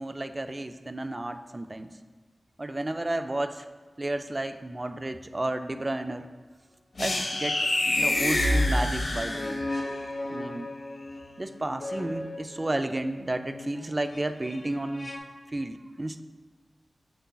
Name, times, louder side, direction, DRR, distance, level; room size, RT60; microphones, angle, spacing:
voice 1, 0.0-1.9 2.6-3.7 4.0-6.3 7.0-7.6 7.9-9.6 10.3-10.7 11.4-15.1 15.5-16.2, right 1 dB, 25° right, 8 dB, 0.3 m, -32 dB
sound 1, 5.7-5.9 7.0-15.2, left 2 dB, 50° left, 0.8 m, -38 dB
sound 2, 7.0-9.9, left 1 dB, 70° left, 1.1 m, -26 dB
7.4 x 6.9 x 2.3 m, 1.4 s
wide cardioid pair, 105°, 0 cm